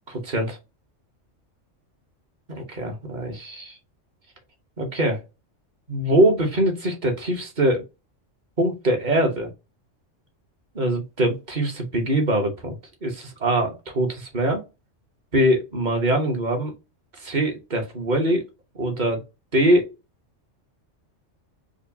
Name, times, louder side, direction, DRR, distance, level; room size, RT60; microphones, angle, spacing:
voice 1, 0.1-0.6 2.5-3.8 4.8-5.2 5.9-7.8 8.6-9.5 10.7-14.6 15.3-16.7 17.2-18.4 18.8-19.2 19.5-19.9, right 1 dB, 40° right, 1.1 m, -23 dB
4.8 x 2.2 x 2.7 m
omnidirectional pair, 1.3 m